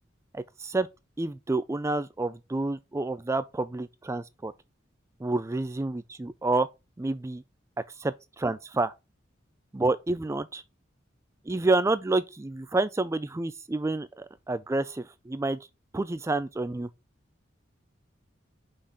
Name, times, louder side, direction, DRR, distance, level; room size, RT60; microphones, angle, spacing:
voice 1, 0.3-0.9 1.2-4.5 5.2-6.7 7.0-7.4 8.4-8.9 9.7-10.6 11.5-15.6 15.9-16.9, right 2 dB, 15° right, 0.3 m, -29 dB
5.8 x 4.0 x 4.9 m
head